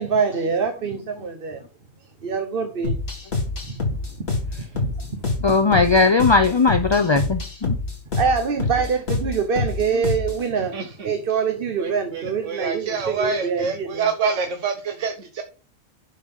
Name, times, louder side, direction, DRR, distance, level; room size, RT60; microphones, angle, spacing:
voice 1, 0.0-1.6 2.2-2.9 3.7-3.8 4.8-5.2 5.7-5.8 8.2-10.8 11.0-14.1, right 6 dB, 45° right, 1.1 m, -25 dB
sound 1, 2.8-10.5, left 3 dB, 50° left, 2.5 m, -26 dB
voice 2, 5.4-7.8, left 4 dB, 35° left, 0.5 m, -18 dB
voice 3, 12.5-15.4, right 5 dB, 65° right, 1.3 m, -26 dB
11.0 x 6.5 x 3.7 m
omnidirectional pair, 1.4 m